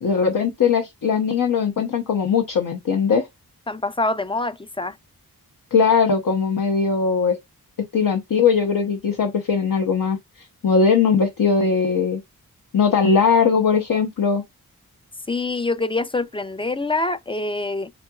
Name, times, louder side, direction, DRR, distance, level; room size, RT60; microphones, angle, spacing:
voice 1, 0.0-3.3 5.7-7.4 7.9-12.2 12.7-14.4, left 5 dB, 65° left, 0.8 m, -20 dB
voice 2, 3.7-5.0 15.3-17.9, left 2 dB, 15° left, 0.3 m, -25 dB
4.3 x 3.7 x 2.3 m
cardioid pair, 60°, 36 cm